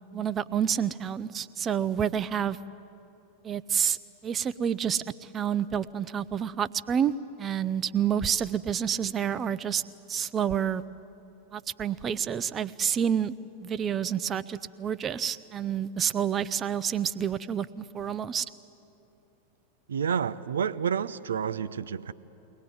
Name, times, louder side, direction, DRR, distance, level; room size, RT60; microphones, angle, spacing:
voice 1, 0.1-2.6 3.4-4.0 4.2-9.8 10.1-10.8 11.5-13.3 13.6-18.5, right 8 dB, 25° right, 0.6 m, -29 dB
voice 2, 19.9-22.1, right 7 dB, 65° right, 0.6 m, -29 dB
22.5 x 18.5 x 9.3 m
figure-of-eight pair, 90°, 0 cm